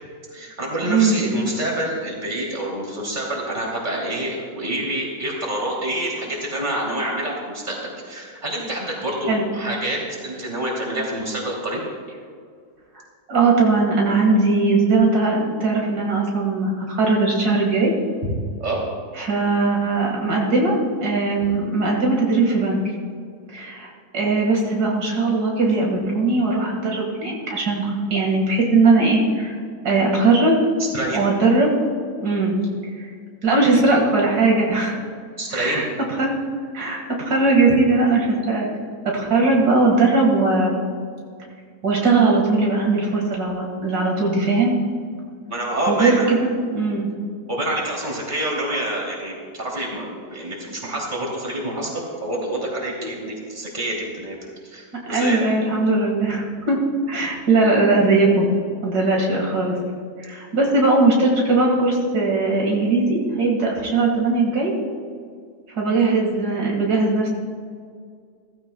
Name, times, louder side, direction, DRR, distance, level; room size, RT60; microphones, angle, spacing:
voice 1, 0.3-11.8 18.6-18.8 30.8-31.3 35.4-35.9 45.5-46.3 47.5-55.4, right 1 dB, 30° right, -3 dB, 3.1 m, -27 dB
voice 2, 0.9-1.2 9.3-9.4 13.3-17.9 19.2-22.8 23.5-29.5 29.8-30.6 31.1-31.7 32.2-32.6 33.4-34.9 35.5-35.9 36.2-36.4 36.7-38.7 39.1-40.7 41.8-44.8 45.9-47.1 53.0-53.1 55.1-56.8 57.1-58.5 58.8-59.8 60.2-64.7 65.8-67.3, right 3 dB, 75° right, -2 dB, 2.4 m, -19 dB
16.0 x 15.0 x 2.3 m, 2.1 s
omnidirectional pair, 1.7 m